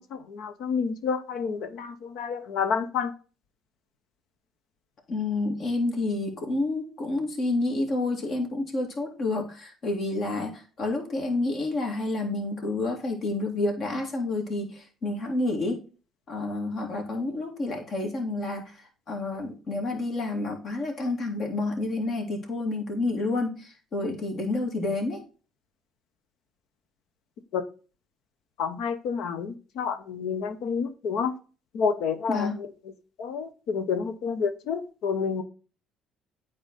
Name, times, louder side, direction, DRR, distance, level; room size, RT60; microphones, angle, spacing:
voice 1, 0.0-3.1 27.5-27.6 28.6-31.3 31.7-32.5 33.2-35.4, left 6 dB, 70° left, 10 dB, 0.9 m, -29 dB
voice 2, 5.1-15.8 16.3-25.2 32.3-32.6, left 2 dB, 55° left, 2 dB, 2.6 m, -29 dB
8.9 x 3.9 x 4.0 m, 0.35 s
supercardioid pair, 70°, 0 cm